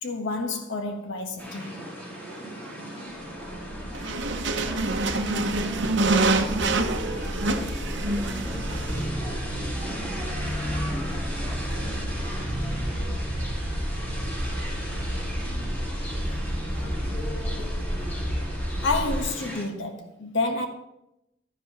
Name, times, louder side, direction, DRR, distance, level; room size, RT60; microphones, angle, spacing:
voice 1, 0.0-1.8 6.5-6.6 18.8-20.7, left 3 dB, 70° left, 1.1 m, -29 dB
sound 1, 1.4-19.6, equal, 10° left, 3.6 m, -36 dB
sound 2, 2.2-19.2, equal, 30° left, 2.9 m, -32 dB
sound 3, 3.9-9.1, right 2 dB, 65° right, 0.7 m, -26 dB
voice 2, 4.6-5.7 6.4-7.6 8.0-10.0 10.6-12.3, equal, 10° right, 2.2 m, -44 dB
11.5 x 10.0 x 2.9 m
head